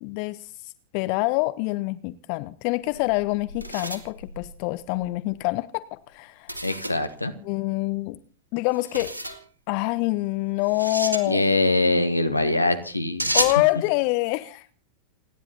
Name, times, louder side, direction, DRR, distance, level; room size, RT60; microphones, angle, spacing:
voice 1, 0.0-6.6 7.4-8.2 8.5-9.2 9.7-11.4 13.3-14.7, left 21 dB, 45° left, 0.6 m, -26 dB
sound 1, 2.8-5.1 6.5-7.1 8.7-9.4 10.6-11.3 13.2-13.7, right 1 dB, 85° right, 2.1 m, -30 dB
voice 2, 6.6-7.3 11.2-13.3, left 2 dB, 85° left, 1.7 m, -23 dB
29.0 x 10.5 x 4.2 m
figure-of-eight pair, 90°, 0 cm